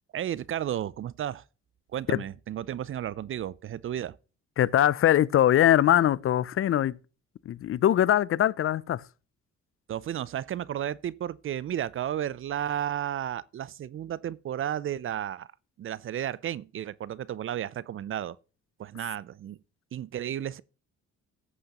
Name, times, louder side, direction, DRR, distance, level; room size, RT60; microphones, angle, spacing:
voice 1, 0.1-1.4 1.9-4.2 9.9-15.5 15.8-18.4 18.8-19.6 19.9-20.6, right 10 dB, 45° right, 0.4 m, -33 dB
voice 2, 4.6-7.0 7.5-9.0, left 11 dB, 45° left, 0.4 m, -22 dB
14.0 x 8.0 x 2.9 m
cardioid pair, 90°, 30 cm